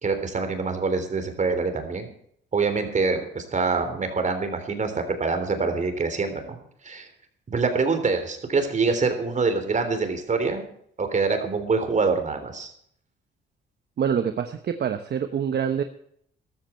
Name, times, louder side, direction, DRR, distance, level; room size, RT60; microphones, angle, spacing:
voice 1, 0.0-2.1 2.5-6.6 6.8-7.1 7.5-10.7 11.0-12.7, right 4 dB, 40° right, 7 dB, 3.6 m, -25 dB
voice 2, 14.0-15.8, right 8 dB, 55° right, 8 dB, 1.1 m, -26 dB
14.5 x 13.0 x 4.5 m, 0.66 s
cardioid pair, 90°, 20 cm